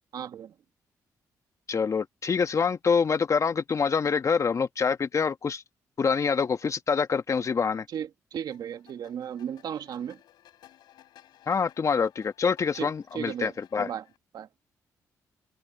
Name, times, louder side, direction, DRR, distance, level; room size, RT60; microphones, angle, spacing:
voice 1, 0.1-0.5 7.9-10.2 12.8-13.5 13.8-14.0 14.3-14.5, right 9 dB, 70° right, 2.0 m, -35 dB
voice 2, 1.7-5.6 6.0-7.8 11.5-13.9, left 5 dB, 45° left, 1.3 m, -26 dB
sound 1, 8.5-14.2, left 12 dB, 85° left, 4.7 m, -58 dB
cardioid pair, 65°, 7 cm